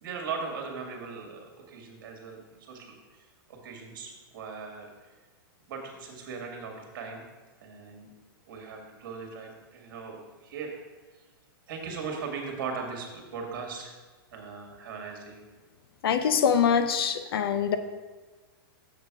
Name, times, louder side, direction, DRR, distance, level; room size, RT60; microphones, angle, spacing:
voice 1, 0.0-4.9 5.7-7.2 7.6-8.1 8.5-10.7 11.7-13.9 14.3-15.4, right 5 dB, 55° right, 1 dB, 1.9 m, -39 dB
voice 2, 16.0-17.8, left 7 dB, 75° left, 10 dB, 0.7 m, -24 dB
7.0 x 6.8 x 4.7 m, 1.3 s
supercardioid pair, 165°, 12 cm